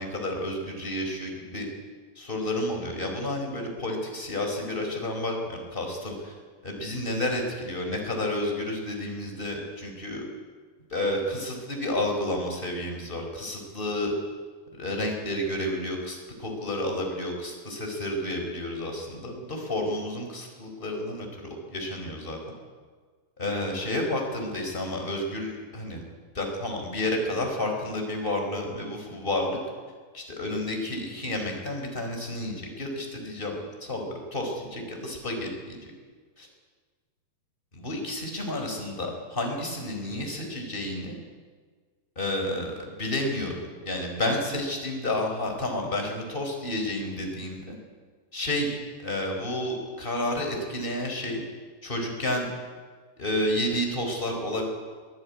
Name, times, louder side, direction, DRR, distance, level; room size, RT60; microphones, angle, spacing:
voice 1, 0.0-1.7 2.2-6.3 6.6-10.2 10.9-14.1 14.7-22.4 23.4-26.0 26.3-29.6 30.1-35.9 36.4-36.5 37.8-41.2 42.1-43.6 43.8-47.8 48.3-51.4 51.8-52.5 53.2-54.6, left 1 dB, 10° left, 2 dB, 4.4 m, -30 dB
22.5 x 18.5 x 9.8 m, 1.5 s
omnidirectional pair, 5.1 m